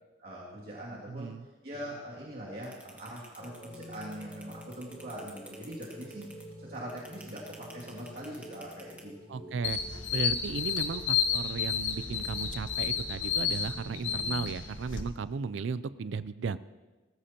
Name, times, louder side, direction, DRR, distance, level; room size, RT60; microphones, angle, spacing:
voice 1, 0.2-1.3 1.6-6.3 6.6-9.6, equal, 50° right, -6 dB, 2.5 m, -42 dB
voice 2, 1.1-1.4 9.3-9.8 10.1-16.6, right 5 dB, 75° right, 15 dB, 0.4 m, -35 dB
sound 1, 2.6-9.0, right 2 dB, 5° right, 1.6 m, -51 dB
sound 2, 3.4-14.5, equal, 30° left, 3.4 m, -49 dB
sound 3, 9.6-15.0, left 7 dB, 80° left, 1.3 m, -31 dB
18.5 x 15.0 x 2.9 m, 1.2 s
head